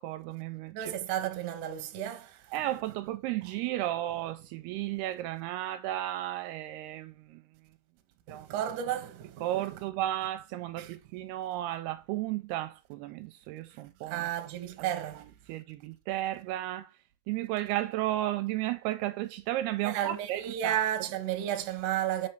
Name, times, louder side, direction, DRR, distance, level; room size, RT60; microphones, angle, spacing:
voice 1, 0.0-0.9 2.5-7.4 8.3-8.5 9.4-14.3 14.8-14.9 15.2-16.9 17.3-20.8, right 14 dB, 80° right, 2.5 m, -34 dB
voice 2, 0.7-2.4 8.3-9.6 10.8-11.0 14.1-15.2 19.8-22.3, right 11 dB, 65° right, 2.1 m, -33 dB
5.8 x 5.5 x 6.5 m
omnidirectional pair, 4.8 m